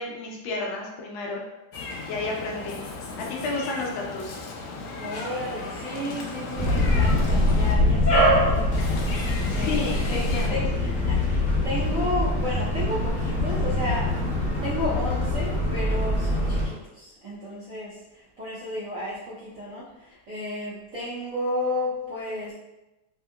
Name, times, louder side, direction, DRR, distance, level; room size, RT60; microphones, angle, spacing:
voice 1, 0.0-1.4 2.1-2.8 3.2-4.4 9.2-10.7, left 3 dB, 75° left, -1 dB, 1.3 m, -32 dB
Meow, 1.7-7.7 8.7-10.5, left 3 dB, 90° left, 1.5 m, -36 dB
voice 2, 5.0-9.0 9.5-10.2 10.5-14.1 14.6-18.0 18.4-19.9 20.3-22.5, left 1 dB, 70° right, -9 dB, 0.7 m, -32 dB
sound 1, 6.5-16.7, left 1 dB, 30° left, 0.9 m, -23 dB
3.5 x 2.9 x 2.2 m, 0.98 s
omnidirectional pair, 2.3 m